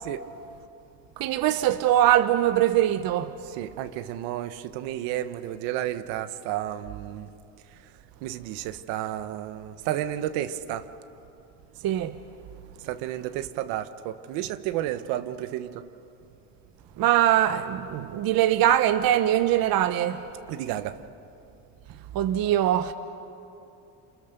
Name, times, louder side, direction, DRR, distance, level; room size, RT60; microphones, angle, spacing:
voice 1, 1.2-3.4 11.8-12.1 17.0-20.2 22.1-22.9, right 12 dB, 55° right, 1.1 m, -22 dB
voice 2, 3.5-7.3 8.2-10.8 12.8-15.8 20.5-20.9, right 12 dB, 80° right, 1.5 m, -32 dB
28.5 x 28.5 x 6.9 m
cardioid pair, 110°, 42 cm